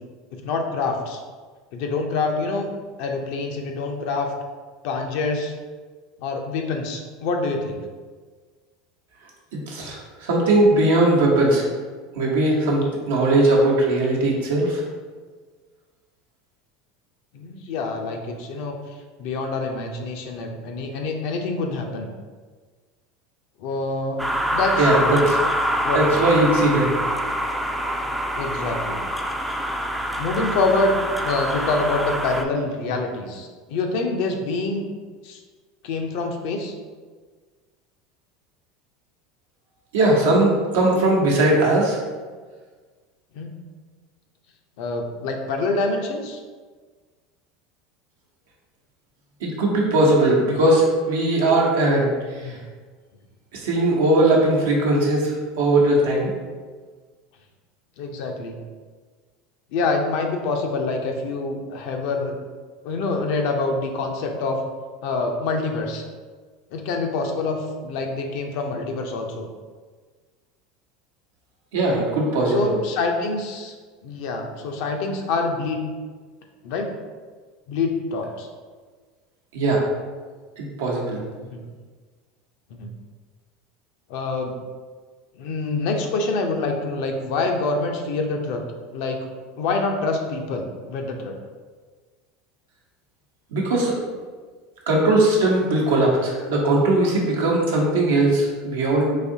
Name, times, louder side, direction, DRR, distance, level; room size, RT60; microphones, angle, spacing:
voice 1, 0.4-1.2 1.7-2.7 3.0-4.3 4.8-5.5 6.2-7.8 17.3-18.7 19.2-22.1 23.6-24.2 24.5-25.2 25.8-26.2 28.3-29.0 30.2-34.9 35.2-35.4 35.8-36.7 43.4-43.5 44.8-46.4 52.4-52.6 58.0-58.5 59.7-62.3 62.8-64.6 65.0-66.0 66.7-69.5 72.5-73.7 74.0-75.8 76.6-76.9 77.7-78.5 81.5-81.6 82.7-82.9 84.1-84.5 85.4-88.6 88.9-89.2 89.6-91.3, left 3 dB, 65° left, 3 dB, 0.5 m, -26 dB
voice 2, 9.7-11.7 12.2-14.8 24.8-25.4 25.9-26.9 39.9-42.0 49.4-52.1 52.4-52.6 53.6-56.3 71.7-72.7 79.5-79.8 80.6-81.2 93.5-93.9 94.9-99.1, right 2 dB, 85° right, -3 dB, 0.9 m, -19 dB
sound 1, 24.2-32.4, equal, 5° right, 0.3 m, -25 dB
4.0 x 2.7 x 2.7 m, 1.5 s
hypercardioid pair, 100°, 0 cm